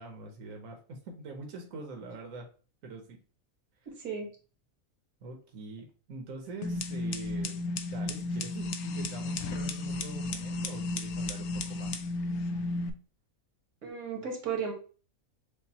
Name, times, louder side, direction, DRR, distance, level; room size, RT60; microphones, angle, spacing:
voice 1, 0.0-2.5 2.8-3.2 5.2-12.0, right 3 dB, 70° right, 2 dB, 1.3 m, -44 dB
sound 1, 6.6-12.9, left 2 dB, 85° left, 1.1 m, -33 dB
voice 2, 13.8-14.7, right 6 dB, 90° right, 2 dB, 1.8 m, -34 dB
6.6 x 2.6 x 2.8 m, 0.37 s
omnidirectional pair, 1.5 m